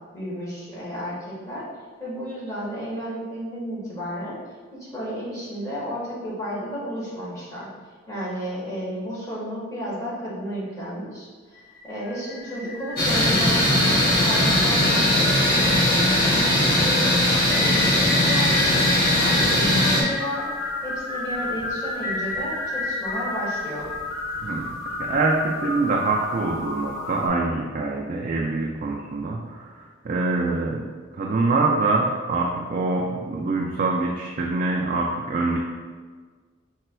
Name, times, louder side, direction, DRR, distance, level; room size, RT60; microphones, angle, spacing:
voice 1, 0.1-1.7 2.0-4.4 4.7-7.7 8.1-18.9 19.2-20.5 20.8-23.9, equal, 15° left, -8 dB, 1.4 m, -32 dB
sound 1, 11.6-27.3, left 2 dB, 90° left, 1.2 m, -31 dB
sound 2, 13.0-20.0, left 1 dB, 45° left, 1.0 m, -19 dB
voice 2, 24.4-24.7 25.0-35.6, right 3 dB, 40° right, -1 dB, 0.3 m, -25 dB
5.0 x 4.4 x 2.2 m, 1.5 s
head